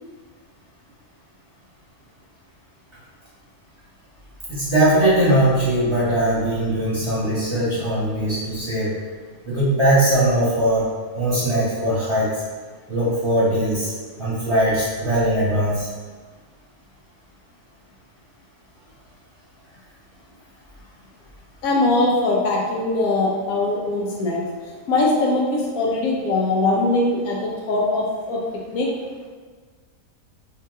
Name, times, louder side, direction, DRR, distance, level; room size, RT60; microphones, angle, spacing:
voice 1, 4.5-8.9 9.4-10.9 11.1-12.4 12.9-13.9 14.2-15.9, right 1 dB, 20° right, -11 dB, 1.1 m, -20 dB
voice 2, 21.6-24.4 24.9-28.4 28.7-28.9, left 2 dB, 75° left, -3 dB, 1.0 m, -21 dB
2.8 x 2.7 x 3.5 m, 1.5 s
omnidirectional pair, 1.5 m